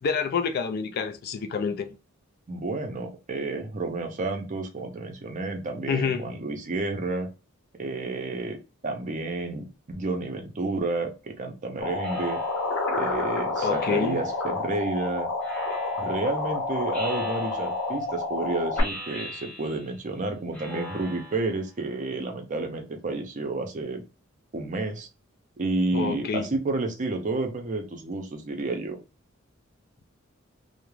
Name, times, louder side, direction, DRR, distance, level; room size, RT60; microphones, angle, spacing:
voice 1, 0.0-2.0 5.9-6.4 13.6-14.2 25.9-26.5, left 5 dB, 50° left, 0.3 m, -28 dB
voice 2, 2.5-7.3 7.8-12.4 12.9-15.3 16.0-24.0 24.5-25.1 25.6-29.0, right 2 dB, 40° right, 0.5 m, -30 dB
sound 1, 11.8-18.8, left 2 dB, 90° left, 0.8 m, -29 dB
Speech synthesizer, 12.0-12.8 13.6-14.4 15.4-16.2 16.9-17.9 18.7-20.0 20.5-21.6, left 2 dB, 5° left, 0.6 m, -40 dB
2.3 x 2.1 x 3.0 m
head